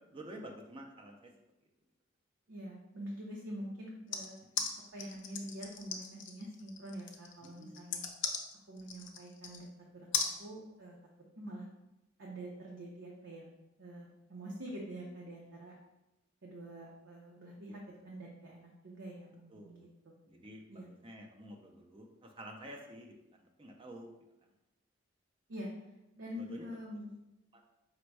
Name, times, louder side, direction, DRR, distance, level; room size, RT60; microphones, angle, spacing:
voice 1, 0.1-1.3 4.5-4.8 7.4-7.9 17.7-17.8 19.5-19.9 20.3-24.1 26.3-26.7 27.5-27.6, right 1 dB, 25° right, 2 dB, 0.5 m, -50 dB
voice 2, 2.5-4.4 4.9-8.0 8.7-9.7 9.9-11.0 11.4-11.7 12.2-13.5 13.8-15.8 16.4-20.1 20.7-20.9 25.5-25.7 26.1-27.1, equal, 65° right, -3 dB, 0.7 m, -46 dB
sound 1, 4.1-9.7 10.1-10.3, left 6 dB, 60° left, 0.5 m, -37 dB
5.1 x 2.2 x 4.5 m, 0.94 s
head